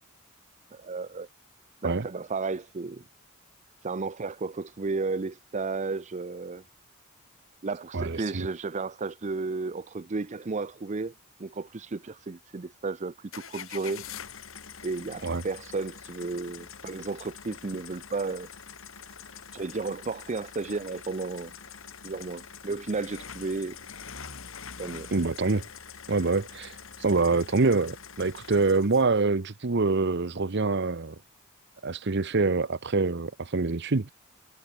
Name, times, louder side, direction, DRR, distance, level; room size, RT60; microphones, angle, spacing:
voice 1, 0.7-1.3 1.8-3.0 3.8-6.6 7.6-11.1 11.4-14.0 14.8-18.5 19.5-21.5 22.0-23.8 24.8-25.1, right 3 dB, 35° right, 0.5 m, -33 dB
voice 2, 7.9-8.5 15.2-15.4 25.1-25.6 26.1-31.1 31.8-34.1, right 3 dB, 55° right, 0.9 m, -25 dB
sound 1, 13.3-29.2, left 7 dB, 70° left, 2.4 m, -45 dB
head